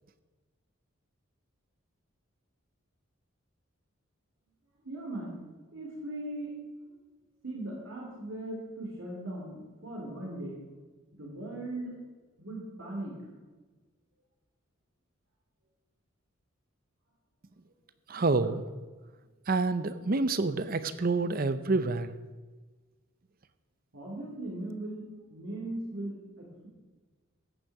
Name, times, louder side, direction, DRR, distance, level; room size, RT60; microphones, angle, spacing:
voice 1, 4.8-5.4 5.7-6.5 7.4-10.6 11.1-12.0 12.4-13.1 23.9-26.7, right 1 dB, 70° right, -2 dB, 2.9 m, -39 dB
voice 2, 18.1-18.6 19.5-22.1, right 3 dB, 45° right, 13 dB, 0.7 m, -28 dB
14.0 x 9.3 x 4.8 m, 1.3 s
head